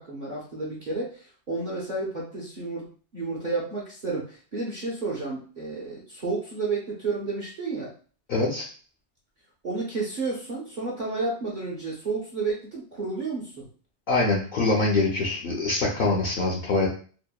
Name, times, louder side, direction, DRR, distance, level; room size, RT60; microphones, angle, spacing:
voice 1, 0.0-2.9 3.1-7.9 9.6-13.7, right 3 dB, 50° right, -4 dB, 0.6 m, -31 dB
voice 2, 8.3-8.6 14.1-16.9, left 3 dB, 60° left, -2 dB, 0.7 m, -24 dB
2.8 x 2.0 x 2.2 m, 0.41 s
omnidirectional pair, 1.2 m